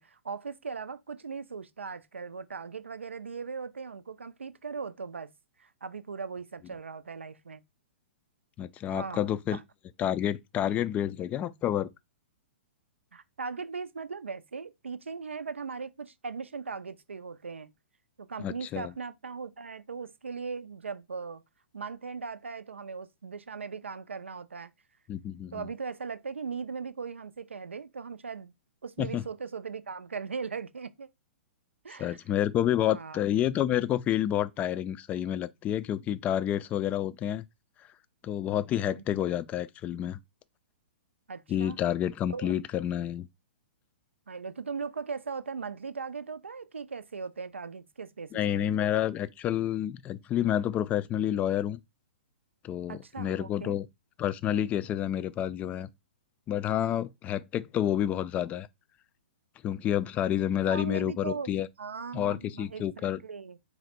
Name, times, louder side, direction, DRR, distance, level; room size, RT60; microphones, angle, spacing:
voice 1, 0.0-5.3 5.6-7.6 8.9-9.6 13.1-17.7 18.2-21.4 21.7-24.7 25.5-28.5 28.8-31.1 31.8-32.2 32.8-33.2 38.7-39.2 41.3-41.8 42.3-42.6 44.3-48.7 52.9-53.8 54.2-54.3 60.7-63.6, right 5 dB, 85° right, 0.4 m, -39 dB
voice 2, 8.6-9.6 10.0-11.9 18.4-18.9 25.1-25.7 29.0-29.2 32.0-37.4 38.2-40.2 41.5-43.3 48.3-51.8 52.6-53.9 54.2-55.9 56.5-58.7 59.6-61.7 62.1-63.2, left 11 dB, 20° left, 0.3 m, -29 dB
4.0 x 2.1 x 4.2 m
figure-of-eight pair, 120°, 6 cm